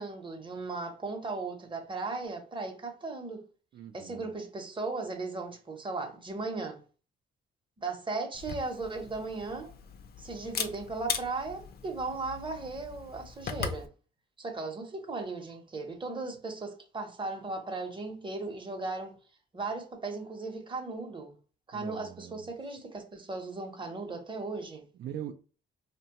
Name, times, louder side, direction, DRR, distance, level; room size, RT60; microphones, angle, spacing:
voice 1, 0.0-3.4 3.9-6.8 7.8-9.7 10.2-13.9 14.4-19.1 19.5-21.4 21.7-24.8, right 3 dB, 25° right, 0.8 m, -37 dB
voice 2, 3.7-4.3 21.7-22.5 25.0-25.3, right 10 dB, 60° right, 0.4 m, -41 dB
Camera, 8.3-13.9, left 7 dB, 50° left, 0.5 m, -39 dB
2.9 x 2.2 x 2.8 m
cardioid pair, 90°, 20 cm